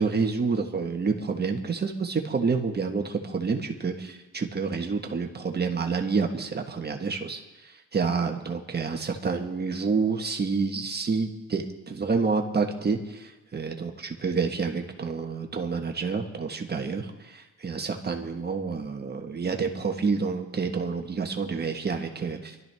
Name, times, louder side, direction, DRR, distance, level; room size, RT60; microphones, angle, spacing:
voice 1, 0.0-22.5, right 5 dB, 35° right, 3 dB, 1.4 m, -28 dB
24.5 x 12.5 x 3.5 m, 1.1 s
cardioid pair, 90°, 30 cm